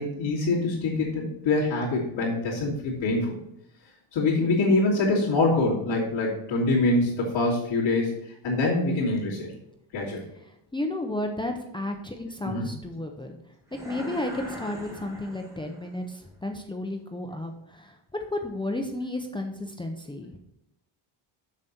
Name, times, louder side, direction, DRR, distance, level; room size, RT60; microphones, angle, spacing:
voice 1, 0.0-3.4 4.1-8.1 8.4-9.5 9.9-10.2 12.4-12.7, left 2 dB, 60° left, -10 dB, 3.2 m, -24 dB
voice 2, 10.4-13.4 13.7-18.0 18.3-20.4, left 1 dB, 10° left, 3 dB, 0.6 m, -33 dB
sound 1, 13.7-16.0, equal, 5° right, 1.5 m, -41 dB
7.3 x 6.6 x 4.3 m, 0.80 s
cardioid pair, 165°, 48 cm